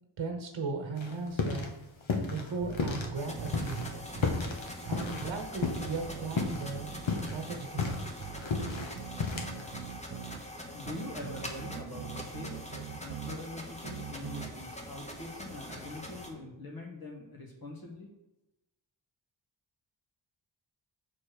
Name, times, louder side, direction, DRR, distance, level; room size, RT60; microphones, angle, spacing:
voice 1, 0.2-1.7 2.3-3.9 4.9-8.0, right 4 dB, 80° right, 4 dB, 1.2 m, -37 dB
sound 1, 1.0-1.7 2.0-3.1 3.5-6.0 6.4-6.6 6.9-9.7, left 4 dB, 75° left, 1.2 m, -32 dB
sound 2, 2.6-4.4 4.9-7.5 7.9-10.4 10.9-13.4 13.9-14.5, right 9 dB, 55° right, 0.5 m, -43 dB
sound 3, 3.1-16.3, equal, 15° left, 1.1 m, -44 dB
voice 2, 10.7-18.1, left 2 dB, 50° left, -2 dB, 1.5 m, -44 dB
6.5 x 4.2 x 6.4 m, 0.96 s
wide cardioid pair, 105°, 46 cm